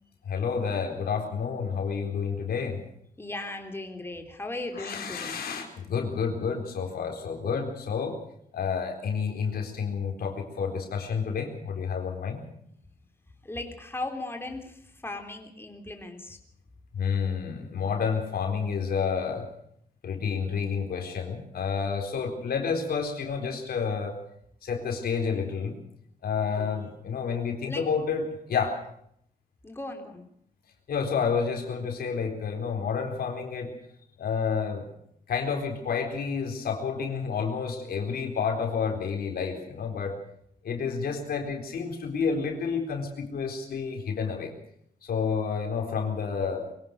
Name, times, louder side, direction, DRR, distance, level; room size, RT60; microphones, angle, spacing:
voice 1, 0.3-2.8 4.8-8.2 8.5-12.4 16.9-19.5 20.0-24.2 24.6-25.8 26.2-28.8 30.9-33.7 34.2-34.9 35.3-40.2 40.6-44.5 45.0-46.7, left 6 dB, 90° left, 3 dB, 4.0 m, -30 dB
voice 2, 3.2-5.4 13.4-16.4 26.5-26.7 27.6-27.9 29.6-30.3, left 2 dB, 15° left, 4 dB, 3.6 m, -37 dB
23.0 x 17.5 x 6.5 m, 0.69 s
cardioid pair, 95°, 15 cm